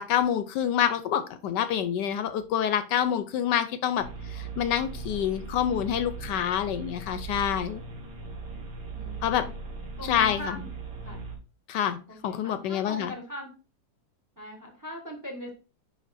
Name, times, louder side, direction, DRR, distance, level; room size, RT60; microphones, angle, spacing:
voice 1, 0.0-7.8 9.2-9.4 10.0-10.4 11.7-12.0 12.2-13.1, left 9 dB, 75° left, 11 dB, 1.1 m, -27 dB
sound 1, 4.0-11.3, right 4 dB, 70° right, 2.4 m, -39 dB
voice 2, 8.9-9.5 10.0-10.7 11.0-11.2 12.1-13.5 14.4-15.5, equal, 10° right, 2 dB, 1.0 m, -40 dB
10.0 x 3.9 x 2.5 m, 0.34 s
omnidirectional pair, 2.0 m